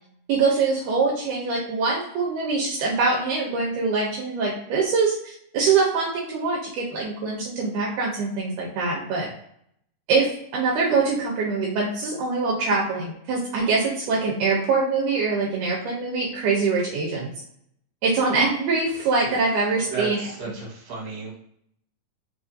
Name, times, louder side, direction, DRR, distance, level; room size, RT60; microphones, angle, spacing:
voice 1, 0.3-9.3 10.1-17.3 18.0-20.2, right 4 dB, 80° right, -2 dB, 2.2 m, -24 dB
voice 2, 19.9-21.4, right 2 dB, 60° right, -4 dB, 2.4 m, -33 dB
4.9 x 2.4 x 2.6 m, 0.71 s
omnidirectional pair, 3.7 m